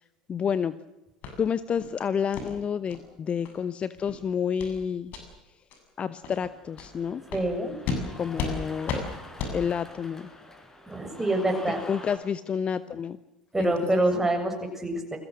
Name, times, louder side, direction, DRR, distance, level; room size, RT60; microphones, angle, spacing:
voice 1, 0.3-0.7 1.4-5.1 6.0-7.2 8.2-9.0 9.5-10.3 11.9-13.2 13.6-13.7, left 7 dB, 30° left, 15 dB, 1.0 m, -29 dB
sound 1, 1.2-1.3 1.8-1.9 2.3-2.5 2.9-3.0 3.4-3.5 3.9-4.1 4.6-4.7 5.1-5.2 5.7-5.8 6.2-6.4 6.8-6.9 7.3-7.4 7.8-8.0 8.4-8.5 8.9-9.0 9.4-9.5, left 5 dB, 45° left, 7.3 m, -33 dB
Cheering, 6.2-12.2, left 1 dB, 10° left, 4.9 m, -46 dB
voice 2, 7.3-7.7 10.9-11.8 13.5-15.2, right 1 dB, 10° right, 3 dB, 7.6 m, -26 dB
29.5 x 22.0 x 6.4 m, 0.95 s
figure-of-eight pair, 70°, 4 cm